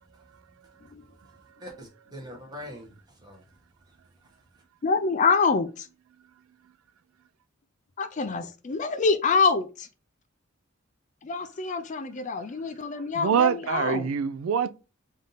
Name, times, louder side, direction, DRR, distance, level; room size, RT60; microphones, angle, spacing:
voice 1, 1.6-3.4 3.9-4.0, equal, 20° right, 1.1 m, -43 dB
voice 2, 4.8-5.9 8.0-9.9 11.2-14.1, left 4 dB, 35° left, 0.4 m, -26 dB
voice 3, 13.1-14.7, right 7 dB, 85° right, 0.3 m, -24 dB
3.5 x 2.7 x 3.9 m
head